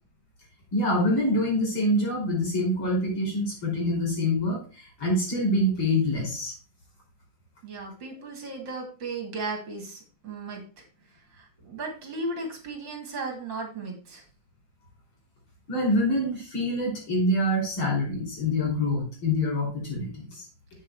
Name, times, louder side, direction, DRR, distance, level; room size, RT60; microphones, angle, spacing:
voice 1, 0.7-6.5 15.7-20.5, left 1 dB, 75° left, -2 dB, 5.7 m, -26 dB
voice 2, 7.6-14.2, right 3 dB, 60° right, 3 dB, 2.9 m, -36 dB
7.7 x 6.6 x 4.7 m, 0.36 s
omnidirectional pair, 2.3 m